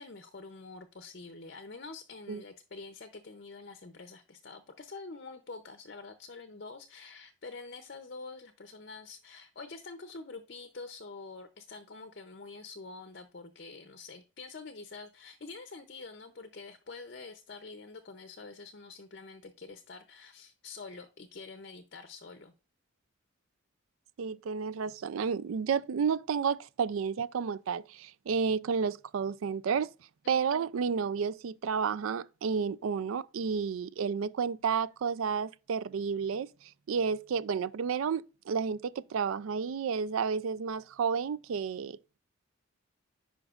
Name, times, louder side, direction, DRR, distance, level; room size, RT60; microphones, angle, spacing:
voice 1, 0.0-22.5 30.2-30.4, left 3 dB, 50° left, 0.6 m, -46 dB
voice 2, 24.2-29.9 30.3-42.2, right 6 dB, 75° right, 0.4 m, -31 dB
10.0 x 5.2 x 2.4 m
head